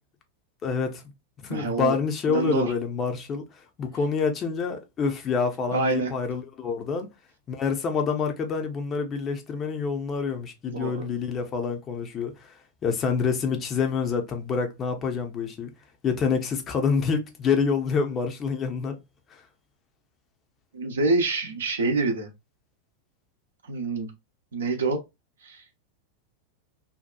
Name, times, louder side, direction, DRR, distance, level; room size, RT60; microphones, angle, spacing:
voice 1, 0.6-1.0 1.4-3.4 3.8-7.1 7.5-12.5 12.8-15.7 16.0-19.0 19.3-19.4, left 5 dB, 25° left, 0.6 m, -27 dB
voice 2, 1.5-1.9 2.3-2.7 5.7-6.1 10.7-11.3 20.7-22.3 23.7-24.1 24.5-25.0 25.4-25.6, right 3 dB, 65° right, 0.7 m, -26 dB
2.7 x 2.3 x 2.2 m
figure-of-eight pair, 90°, 0 cm